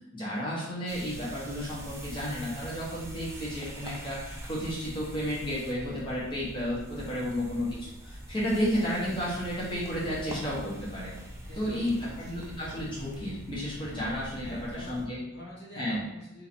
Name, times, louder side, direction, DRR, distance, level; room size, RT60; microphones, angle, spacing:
voice 1, 0.1-11.1 11.6-15.2 15.8-16.0, equal, 25° left, -8 dB, 1.2 m, -32 dB
sound 1, 0.9-15.1, right 1 dB, 15° right, 0.6 m, -43 dB
voice 2, 7.0-7.5 11.5-12.5 14.4-16.5, left 1 dB, 50° left, -6 dB, 1.3 m, -47 dB
3.8 x 2.7 x 4.4 m, 0.88 s
head